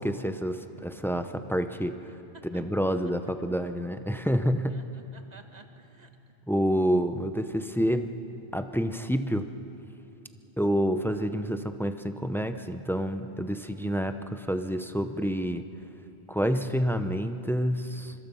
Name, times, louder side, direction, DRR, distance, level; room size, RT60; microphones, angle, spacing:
voice 1, 0.0-2.0 2.5-4.8 6.5-8.1 8.5-9.5 10.6-15.6 16.3-18.1, equal, 5° left, 9 dB, 0.5 m, -28 dB
voice 2, 2.3-3.1 4.7-6.3, right 3 dB, 40° right, 6 dB, 1.3 m, -54 dB
25.0 x 22.5 x 5.6 m, 2.8 s
omnidirectional pair, 1.1 m